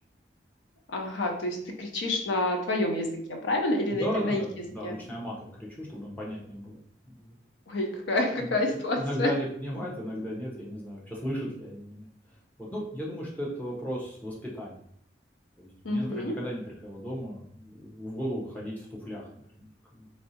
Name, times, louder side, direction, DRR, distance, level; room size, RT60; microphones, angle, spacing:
voice 1, 0.9-4.4 4.8-5.0 7.7-9.3 15.8-16.3, left 2 dB, 90° left, 2 dB, 0.6 m, -28 dB
voice 2, 3.9-6.8 7.2-7.3 8.4-8.5 9.0-12.1 12.6-14.8 15.6-19.3 19.6-20.1, equal, 10° left, -5 dB, 0.7 m, -35 dB
3.2 x 2.6 x 2.7 m, 0.66 s
head